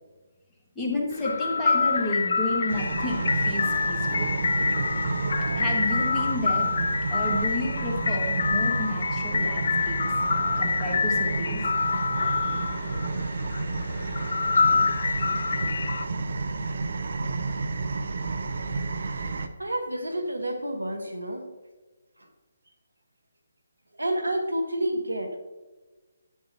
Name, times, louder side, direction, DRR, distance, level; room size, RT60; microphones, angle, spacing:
voice 1, 0.8-4.3 5.5-6.7 7.1-10.0 10.6-11.6 12.2-12.7, left 1 dB, 5° left, -5 dB, 1.7 m, -31 dB
sound 1, 1.1-16.1, left 5 dB, 60° left, 0.4 m, -26 dB
sound 2, 2.7-19.5, right 3 dB, 60° right, 0.6 m, -31 dB
voice 2, 19.6-21.4 24.0-25.4, right 1 dB, 90° right, 5 dB, 1.3 m, -29 dB
10.0 x 8.6 x 2.8 m, 1.2 s
figure-of-eight pair, 145°, 0 cm